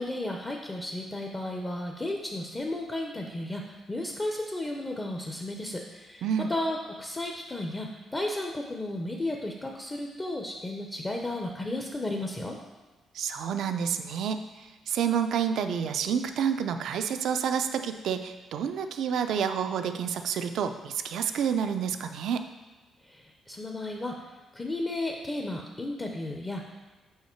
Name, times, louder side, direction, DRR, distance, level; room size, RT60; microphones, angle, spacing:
voice 1, 0.0-12.6 23.0-26.8, left 1 dB, 20° left, 1 dB, 0.7 m, -34 dB
voice 2, 13.1-22.4, right 7 dB, 75° right, 8 dB, 0.4 m, -29 dB
5.7 x 4.8 x 4.5 m, 1.3 s
cardioid pair, 90°, 0 cm